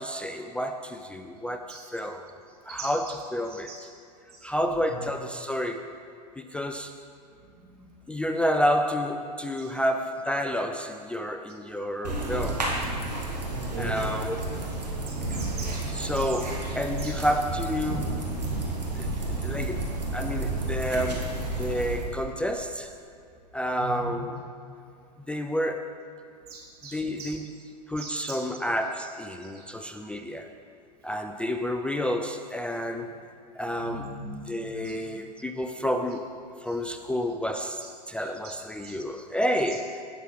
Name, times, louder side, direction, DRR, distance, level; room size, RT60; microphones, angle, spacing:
voice 1, 0.0-2.2 2.7-3.9 4.4-5.9 6.4-6.9 8.1-12.7 13.8-14.5 15.8-18.3 18.9-19.1 19.4-22.9 23.5-24.4 25.3-26.0 26.9-30.5 31.0-33.1 33.6-34.1 34.5-36.3 36.6-40.0, equal, 5° left, 6 dB, 0.4 m, -30 dB
sound 1, 12.0-22.1, right 2 dB, 85° right, 2.0 m, -31 dB
voice 2, 13.5-13.9 15.1-16.2 17.0-17.1 23.8-24.1 26.5-27.3 28.0-28.4 33.8-34.3 34.6-34.9 38.8-38.9, right 3 dB, 65° right, -3 dB, 2.8 m, -40 dB
18.5 x 6.2 x 3.3 m, 2.4 s
hypercardioid pair, 95°, 21 cm